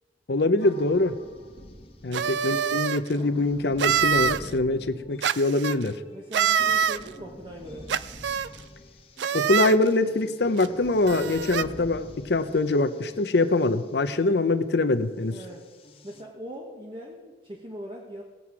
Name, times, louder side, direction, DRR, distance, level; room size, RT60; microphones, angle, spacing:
voice 1, 0.3-1.2 2.0-6.0 9.3-15.4, left 2 dB, 65° left, 11 dB, 0.7 m, -24 dB
sound 1, 0.6-2.8 3.1-14.3 15.2-16.2, left 1 dB, 35° left, 1.3 m, -47 dB
sound 2, 2.1-3.0 3.8-4.4 5.2-5.8 6.3-7.0 7.9-8.5 9.2-9.8 10.6-10.7 11.0-11.6, right 8 dB, 85° right, 0.4 m, -25 dB
voice 2, 6.1-7.9 15.3-15.7 16.0-18.2, right 1 dB, 30° right, -1 dB, 1.1 m, -40 dB
18.5 x 7.7 x 4.8 m, 1.4 s
head